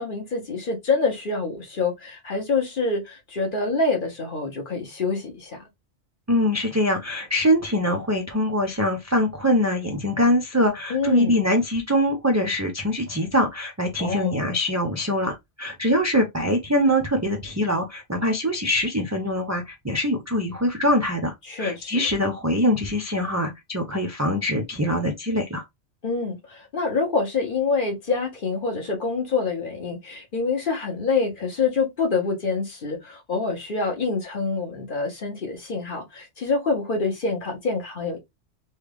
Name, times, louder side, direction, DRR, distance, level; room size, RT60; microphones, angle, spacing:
voice 1, 0.0-5.6 10.9-11.4 14.0-14.3 21.4-22.0 26.0-38.2, left 4 dB, 50° left, 1.2 m, -26 dB
voice 2, 6.3-25.6, equal, 30° right, 0.3 m, -23 dB
3.3 x 2.3 x 3.3 m
omnidirectional pair, 1.2 m